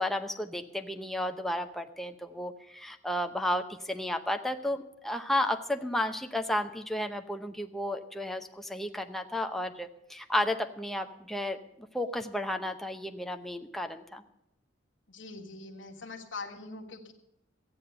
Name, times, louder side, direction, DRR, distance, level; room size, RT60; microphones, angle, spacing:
voice 1, 0.0-14.2, left 1 dB, ahead, 5 dB, 0.7 m, -33 dB
voice 2, 15.1-17.1, left 3 dB, 75° left, -1 dB, 1.5 m, -43 dB
13.5 x 9.3 x 6.8 m, 0.84 s
head